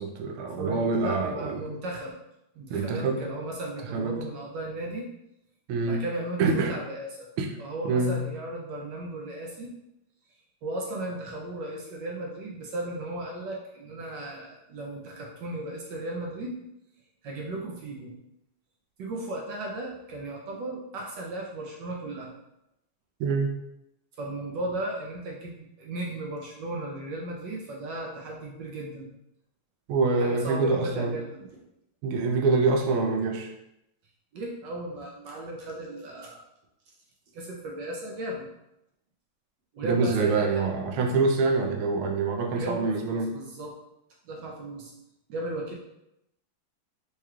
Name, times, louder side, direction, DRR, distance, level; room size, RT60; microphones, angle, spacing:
voice 1, 0.0-1.6 2.7-3.2 3.9-4.2 5.7-6.0 6.4-6.8 7.4-7.5 7.8-8.2 23.2-23.5 29.9-31.1 32.0-33.5 39.8-43.3, right 4 dB, 85° right, 3 dB, 1.4 m, -25 dB
voice 2, 0.6-2.1 2.5-5.1 5.9-7.3 7.6-9.7 10.6-16.6 17.2-18.1 19.0-22.3 24.2-29.1 30.2-31.6 34.3-36.4 37.3-38.5 39.7-40.7 42.5-43.8 44.2-44.9 45.3-45.7, right 1 dB, 70° right, -2 dB, 1.2 m, -36 dB
4.8 x 2.9 x 2.3 m, 0.85 s
omnidirectional pair, 2.2 m